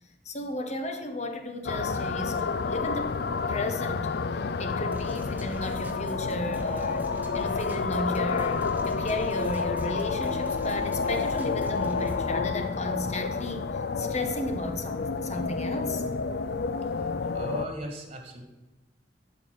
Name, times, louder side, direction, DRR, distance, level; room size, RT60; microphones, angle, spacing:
voice 1, 0.2-7.0 7.3-16.0, left 1 dB, 40° left, 6 dB, 1.2 m, -34 dB
sound 1, 1.7-17.7, left 4 dB, 60° left, 0.5 m, -30 dB
sound 2, 4.9-12.3, right 1 dB, 10° right, 1.1 m, -44 dB
voice 2, 16.9-18.4, right 1 dB, 35° right, 3 dB, 2.0 m, -38 dB
12.5 x 4.8 x 6.9 m, 1.1 s
head